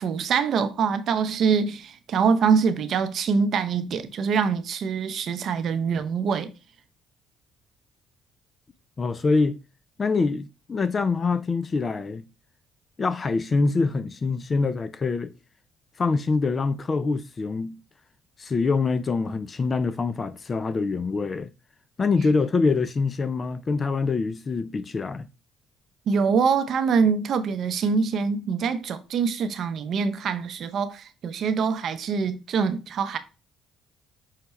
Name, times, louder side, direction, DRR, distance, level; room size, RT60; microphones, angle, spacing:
voice 1, 0.0-6.5 26.1-33.2, right 6 dB, 60° right, 0.6 m, -24 dB
voice 2, 9.0-9.6 10.0-12.3 13.0-15.3 16.0-17.8 18.4-21.5 22.0-25.3, left 4 dB, 35° left, 0.3 m, -25 dB
5.5 x 2.2 x 2.9 m
supercardioid pair, 70°, 0 cm